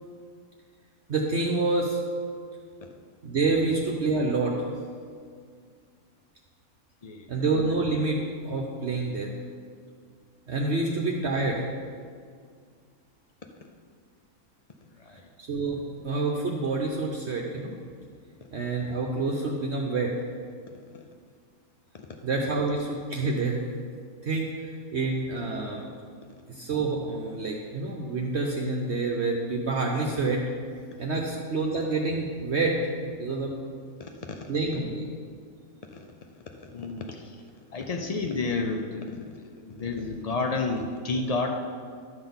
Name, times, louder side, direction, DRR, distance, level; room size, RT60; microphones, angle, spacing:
voice 1, 1.1-2.0 3.2-4.7 7.3-8.2 8.4-9.3 10.5-11.7 15.4-15.8 16.0-17.7 18.5-20.1 22.2-23.6 24.2-25.9 26.5-30.4 31.0-32.8 33.0-33.5 34.5-35.0, right 3 dB, 55° right, -1 dB, 1.0 m, -27 dB
voice 2, 34.0-34.4 35.9-36.1 36.3-37.4 37.7-41.5, left 3 dB, 80° left, 4 dB, 0.3 m, -31 dB
11.5 x 3.9 x 7.0 m, 2.1 s
omnidirectional pair, 1.5 m